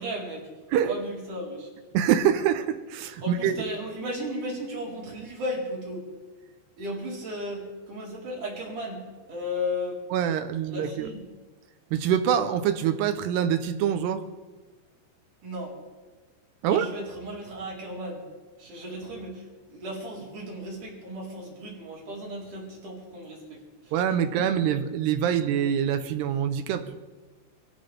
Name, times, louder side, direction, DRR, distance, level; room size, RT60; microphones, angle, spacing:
voice 1, 0.0-1.7 3.2-6.1 6.8-10.0 10.7-11.2 15.4-15.8 16.6-18.2 18.6-23.9 24.3-24.5, left 1 dB, 45° right, -4 dB, 5.4 m, -35 dB
voice 2, 1.9-3.6 10.1-11.1 11.9-14.2 16.6-16.9 23.9-26.8, right 9 dB, 75° right, 9 dB, 2.7 m, -25 dB
25.5 x 14.5 x 3.5 m, 1.3 s
omnidirectional pair, 5.3 m